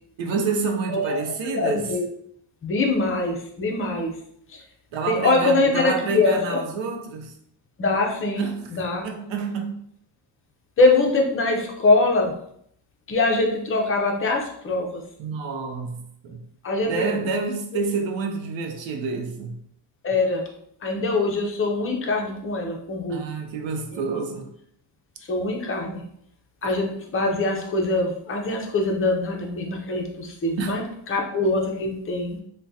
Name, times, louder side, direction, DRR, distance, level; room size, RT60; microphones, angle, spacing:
voice 1, 0.2-1.9 4.9-7.3 8.4-8.7 9.0-9.8 15.2-16.4 16.8-19.6 23.1-24.5 30.6-30.8, right 4 dB, 70° right, 0.7 m, -28 dB
voice 2, 0.9-1.2 1.4-2.1 2.6-4.1 4.5-4.6 5.0-6.6 7.8-9.0 10.8-12.4 13.1-15.0 16.6-17.3 20.0-20.5 20.8-23.3 23.9-24.0 25.3-26.0 26.6-32.4, left 2 dB, 30° left, 0.5 m, -23 dB
3.5 x 2.2 x 2.6 m
cardioid pair, 150°, 47 cm